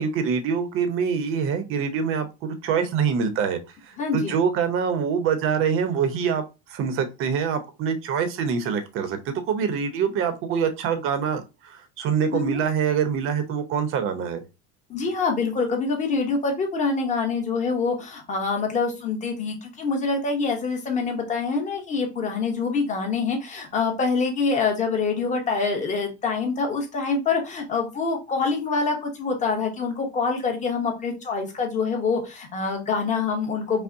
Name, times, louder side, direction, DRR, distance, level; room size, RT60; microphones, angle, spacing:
voice 1, 0.0-14.4, right 6 dB, 45° right, 9 dB, 0.7 m, -25 dB
voice 2, 4.0-4.4 12.3-12.6 14.9-33.8, left 4 dB, 25° left, 2 dB, 1.0 m, -25 dB
5.4 x 2.1 x 2.6 m, 0.27 s
cardioid pair, 155°, 30 cm